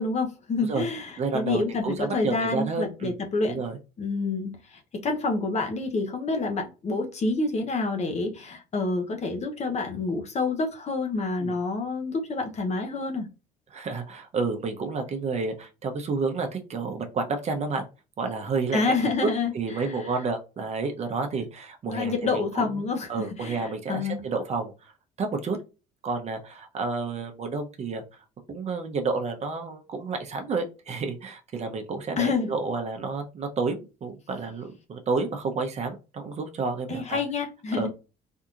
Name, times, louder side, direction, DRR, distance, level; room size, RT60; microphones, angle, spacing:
voice 1, 0.0-3.6 4.0-13.3 18.7-20.2 21.9-24.2 32.2-32.5 36.9-37.9, left 3 dB, 40° left, 4 dB, 0.8 m, -28 dB
voice 2, 1.2-3.1 3.4-3.8 11.4-11.6 13.7-17.8 18.2-18.8 19.2-19.3 19.5-24.9 25.2-25.6 26.0-28.0 28.5-37.2 37.8-37.9, right 4 dB, 40° right, 5 dB, 0.7 m, -30 dB
3.6 x 2.8 x 2.4 m, 0.31 s
cardioid pair, 110°, 17 cm